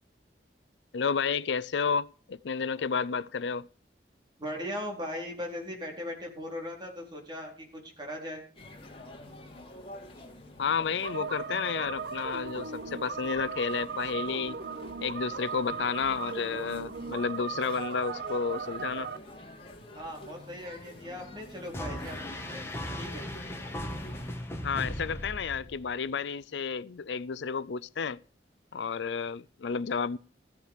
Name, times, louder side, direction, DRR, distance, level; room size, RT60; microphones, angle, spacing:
voice 1, 0.9-3.7 10.6-14.6 15.0-19.1 24.6-28.2 28.7-30.2, left 5 dB, 85° left, 0.5 m, -31 dB
voice 2, 4.4-8.4 19.9-22.7 23.0-23.2, left 1 dB, 25° right, 4.3 m, -39 dB
sound 1, 8.6-24.4, left 1 dB, 35° left, 3.0 m, -48 dB
sound 2, 11.0-19.2, right 6 dB, 65° right, 0.9 m, -37 dB
sound 3, 21.7-26.0, left 1 dB, 15° left, 2.0 m, -37 dB
15.5 x 9.7 x 4.8 m
head